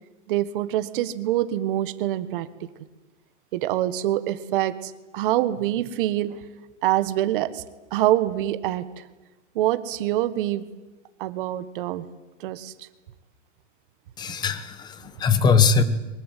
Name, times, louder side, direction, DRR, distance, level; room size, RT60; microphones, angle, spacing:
voice 1, 0.3-2.5 3.5-6.4 6.8-7.6 7.9-9.0 9.5-10.7 11.2-12.1 12.4-12.9, right 14 dB, 45° right, 13 dB, 1.6 m, -25 dB
voice 2, 14.2-15.8, left 5 dB, 10° left, 13 dB, 1.1 m, -21 dB
23.5 x 20.5 x 9.3 m, 1.2 s
supercardioid pair, 165°, 37 cm